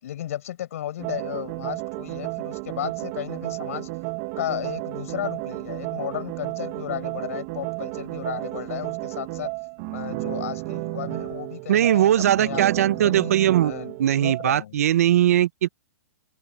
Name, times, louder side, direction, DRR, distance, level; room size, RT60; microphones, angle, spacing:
voice 1, 0.0-3.9 4.4-9.5 9.9-13.3 13.6-13.9 14.2-14.8, left 12 dB, 60° left, 6.2 m, -34 dB
sound 1, 1.0-14.5, right 25 dB, 40° right, 1.9 m, -32 dB
voice 2, 11.7-13.7 14.0-15.7, right 11 dB, 65° right, 0.9 m, -20 dB
open air
hypercardioid pair, 145°, 9 cm